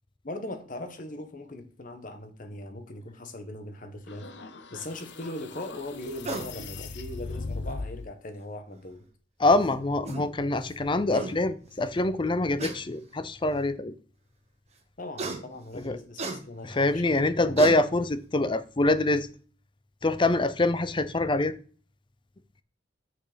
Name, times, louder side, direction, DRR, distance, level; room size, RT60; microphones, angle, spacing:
voice 1, 0.2-4.3 4.7-9.0 15.0-17.9, left 1 dB, 45° left, 1.3 m, -40 dB
sound 1, 4.1-8.1, left 3 dB, 70° left, 0.9 m, -39 dB
sound 2, 6.2-6.5 8.0-8.1 9.6-9.7 10.0-10.3 10.8-10.9 11.1-11.3 12.6-12.8 13.6-13.7 15.2-15.4 16.2-16.4 17.1-17.2 17.6-17.8, right 3 dB, 35° right, 1.4 m, -33 dB
voice 2, 9.4-14.0 15.7-16.0 16.6-19.3 20.0-21.5, left 2 dB, 25° left, 0.6 m, -25 dB
6.6 x 6.2 x 5.1 m
head